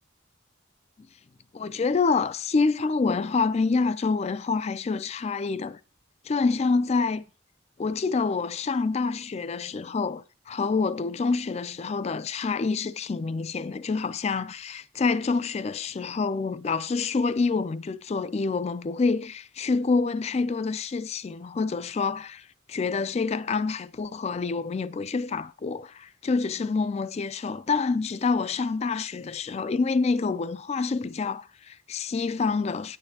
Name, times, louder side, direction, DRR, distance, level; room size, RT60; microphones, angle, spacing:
voice 1, 1.5-5.8 6.2-7.2 7.8-33.0, left 4 dB, 30° left, 0.3 m, -27 dB
9.6 x 8.7 x 2.8 m
head